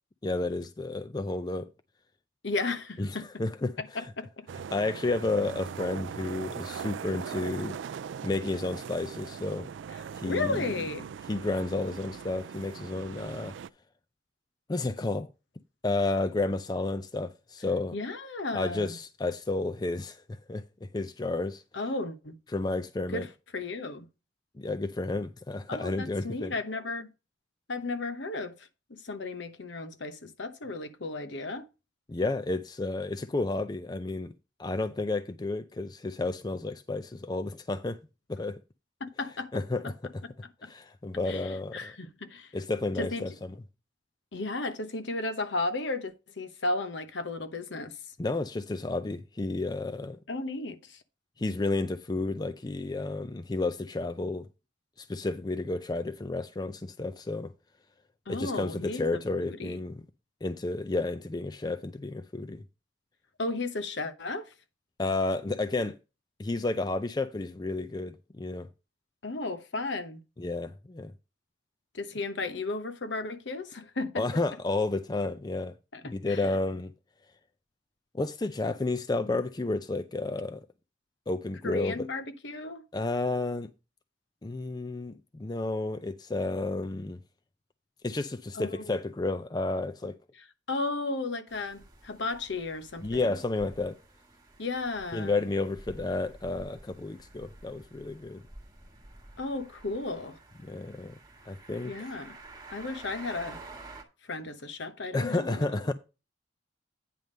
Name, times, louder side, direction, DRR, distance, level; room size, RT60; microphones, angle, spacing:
voice 1, 0.2-1.7 3.0-3.8 4.7-7.8 8.2-9.7 10.1-10.8 11.3-13.6 14.7-15.3 15.8-18.0 18.5-21.6 22.5-23.3 24.6-26.5 32.1-34.3 34.6-38.0 38.3-38.6 39.5-39.9 40.6-41.9 42.5-43.5 48.2-50.2 51.4-54.5 55.0-57.5 58.3-60.0 60.4-62.6 65.0-66.0 66.4-68.7 70.4-71.1 74.2-75.7 76.0-76.9 78.1-80.6 81.3-82.1 82.9-83.7 84.4-87.2 88.0-90.2 93.0-94.0 95.1-98.4 100.6-101.1 101.5-102.1 105.1-105.9, left 2 dB, 20° left, 0.4 m, -31 dB
voice 2, 2.4-3.2 3.8-4.5 10.2-11.1 17.9-19.0 21.7-22.4 23.1-23.3 23.5-24.1 25.7-27.1 27.7-28.6 28.9-31.7 39.0-39.5 39.8-39.9 40.6-40.7 41.3-42.5 43.0-43.2 44.3-47.9 50.3-51.0 58.3-59.8 63.4-64.5 69.2-70.2 71.9-74.2 75.9-76.5 81.6-82.9 88.6-88.9 90.7-93.4 94.6-95.4 99.4-100.4 101.9-102.4 102.7-103.6 104.3-105.8, left 3 dB, 65° left, 1.0 m, -34 dB
sound 1, 4.5-13.7, right 7 dB, 70° right, 0.3 m, -40 dB
sound 2, 91.5-104.0, right 2 dB, 20° right, 1.6 m, -50 dB
9.2 x 3.5 x 6.5 m
head